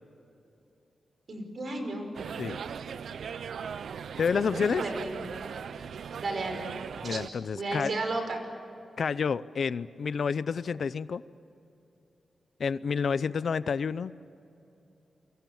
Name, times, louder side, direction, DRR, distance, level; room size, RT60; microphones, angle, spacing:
voice 1, 1.3-2.1 4.4-5.1 6.2-6.6 7.0-7.2 7.5-8.4, right 2 dB, 50° right, 5 dB, 5.2 m, -33 dB
sound 1, 2.1-7.3, right 7 dB, 85° right, 0.7 m, -38 dB
voice 2, 4.2-4.8 7.0-7.9 9.0-11.2 12.6-14.1, left 6 dB, 60° left, 16 dB, 0.6 m, -29 dB
29.5 x 24.0 x 7.1 m, 2.8 s
wide cardioid pair, 160°, 0 cm